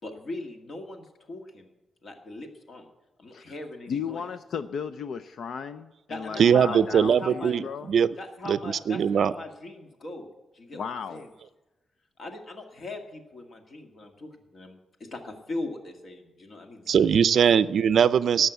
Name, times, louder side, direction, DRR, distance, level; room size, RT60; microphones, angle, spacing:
voice 1, 0.0-1.7 2.0-2.9 3.2-4.3 6.1-7.6 8.2-11.3 12.2-16.9 17.3-17.5, left 2 dB, 50° left, 4 dB, 2.0 m, -40 dB
voice 2, 3.9-7.9 10.7-11.2, left 6 dB, 70° left, 11 dB, 0.5 m, -35 dB
voice 3, 6.4-8.1 8.5-8.6 8.9-9.3 16.9-18.5, right 7 dB, 65° right, 16 dB, 0.4 m, -21 dB
18.0 x 6.6 x 8.0 m, 1.1 s
wide cardioid pair, 160°, 0 cm